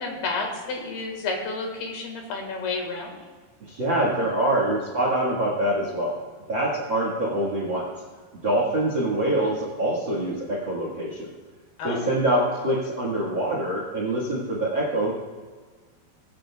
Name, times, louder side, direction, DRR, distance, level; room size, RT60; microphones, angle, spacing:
voice 1, 0.0-3.2 11.8-12.1, left 3 dB, 65° left, 2 dB, 3.4 m, -30 dB
voice 2, 3.6-6.2 6.5-7.9 8.4-11.3 11.8-15.1, right 1 dB, 70° right, -3 dB, 1.1 m, -25 dB
23.0 x 8.9 x 2.3 m, 1.5 s
omnidirectional pair, 5.1 m